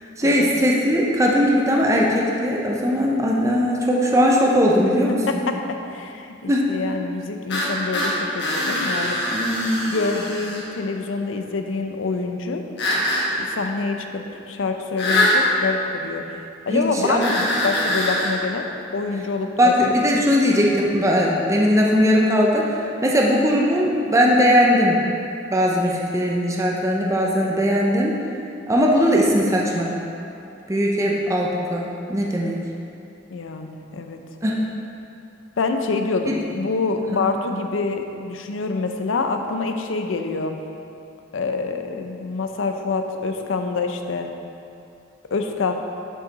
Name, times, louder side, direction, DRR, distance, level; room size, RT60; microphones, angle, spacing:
voice 1, 0.2-5.4 6.5-6.7 9.3-9.8 16.7-17.3 19.6-25.0 25.5-28.2 28.7-29.9 30.7-32.6 34.4-34.6 36.3-36.4, equal, 15° right, -2 dB, 0.6 m, -19 dB
voice 2, 5.3-9.2 9.9-12.6 13.4-19.7 20.1-20.3 33.3-34.2 35.6-40.6 41.3-44.3 45.3-45.7, left 4 dB, 90° left, 5 dB, 0.5 m, -26 dB
sound 1, 7.5-10.7 12.8-13.3 15.0-15.4 17.2-18.3, left 1 dB, 60° left, 1.3 m, -23 dB
7.3 x 5.4 x 4.0 m, 2.6 s
head